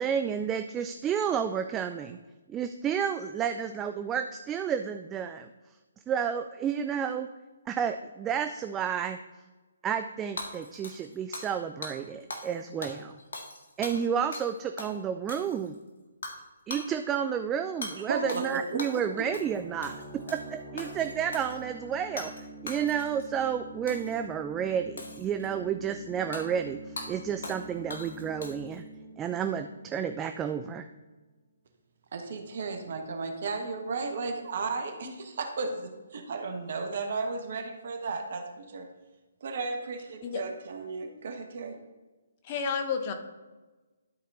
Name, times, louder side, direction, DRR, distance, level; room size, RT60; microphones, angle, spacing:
voice 1, 0.0-2.2 2.5-5.5 6.1-7.3 7.7-9.2 9.8-13.2 13.8-15.8 16.7-20.0 20.3-28.8 29.2-30.9, right 8 dB, 15° right, 8 dB, 0.4 m, -31 dB
Hammer / Shatter, 10.4-11.6 11.8-12.0 12.3-12.5 12.8-14.5 14.8-14.9 15.3-15.7 16.2-16.4 16.7-16.9 17.8-17.9 18.3-19.0 19.3-19.6 19.8-20.4 20.8-21.6 22.2-22.4 22.7-23.3 23.9-24.2 25.0-25.5 26.3-26.4 27.0-27.1 27.4-27.6 27.9-28.7, left 2 dB, 65° left, 1.6 m, -40 dB
voice 2, 18.1-19.3 32.1-38.9 39.4-41.8, right 4 dB, 55° right, 5 dB, 1.4 m, -34 dB
sound 1, 19.0-30.5, right 2 dB, 5° left, 1.8 m, -46 dB
voice 3, 42.4-43.1, left 6 dB, 35° left, 6 dB, 1.1 m, -31 dB
12.0 x 4.3 x 3.8 m, 1.2 s
figure-of-eight pair, 140°, 0 cm